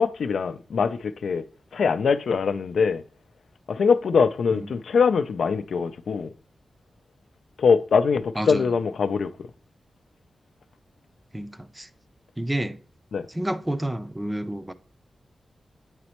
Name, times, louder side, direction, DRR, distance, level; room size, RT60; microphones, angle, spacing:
voice 1, 0.0-1.4 1.7-3.0 3.7-6.3 7.6-9.3 13.1-13.3, left 5 dB, 85° left, 0.4 m, -22 dB
voice 2, 8.4-8.8 11.3-11.9 12.4-12.8 13.3-14.7, right 1 dB, 10° right, 0.5 m, -30 dB
8.8 x 4.2 x 2.9 m
wide cardioid pair, 140°, 0 cm